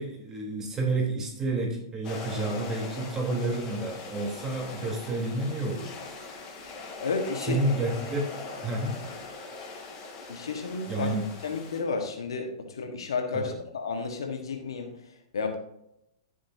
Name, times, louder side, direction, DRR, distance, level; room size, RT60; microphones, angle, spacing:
voice 1, 0.0-5.9 7.4-8.2 8.6-9.3 10.9-11.2 13.3-13.5, right 2 dB, 20° right, -1 dB, 3.8 m, -30 dB
sound 1, 2.0-11.8, left 3 dB, 35° left, 3.0 m, -41 dB
voice 2, 7.0-7.6 10.3-11.1 11.4-14.9 15.3-15.6, left 4 dB, 80° left, 4 dB, 1.6 m, -32 dB
14.0 x 7.3 x 2.8 m, 0.81 s
hypercardioid pair, 110°, 2 cm